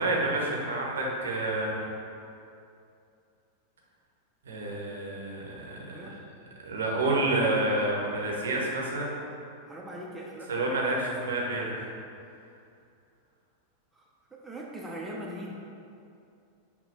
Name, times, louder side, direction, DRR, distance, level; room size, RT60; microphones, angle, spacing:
voice 1, 0.0-1.9 4.4-6.1 6.6-9.2 10.5-11.9, right 2 dB, 65° right, -2 dB, 0.6 m, -29 dB
voice 2, 5.9-6.2 9.7-10.5 13.9-15.6, equal, 10° right, -3 dB, 0.4 m, -41 dB
5.6 x 2.2 x 2.6 m, 2.6 s
figure-of-eight pair, 90°, 0 cm